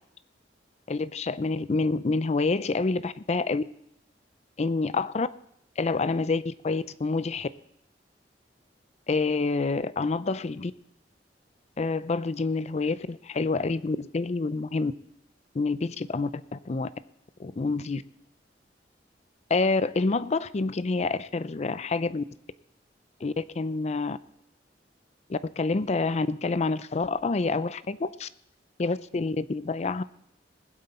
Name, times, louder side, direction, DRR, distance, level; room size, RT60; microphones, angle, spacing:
voice 1, 0.9-3.6 4.6-5.3 5.8-7.5 9.1-10.7 11.8-14.9 15.5-16.9 17.4-18.0 19.5-22.2 23.2-24.2 25.3-28.3 28.8-30.0, left 3 dB, 40° left, 15 dB, 0.5 m, -27 dB
20.0 x 8.0 x 4.3 m, 0.74 s
head